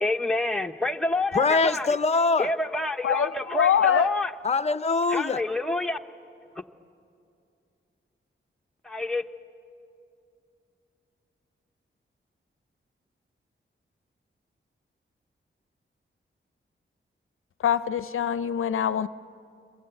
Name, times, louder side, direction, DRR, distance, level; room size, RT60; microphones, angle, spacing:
voice 1, 0.0-2.0 2.4-4.3 5.1-6.0 8.8-9.2, left 2 dB, 5° left, 0.8 m, -28 dB
voice 2, 1.3-2.5 4.4-5.4, left 4 dB, 30° left, 0.5 m, -23 dB
voice 3, 3.0-4.2 17.6-19.1, left 9 dB, 85° left, 0.5 m, -24 dB
26.5 x 22.0 x 8.0 m
wide cardioid pair, 115°, 21 cm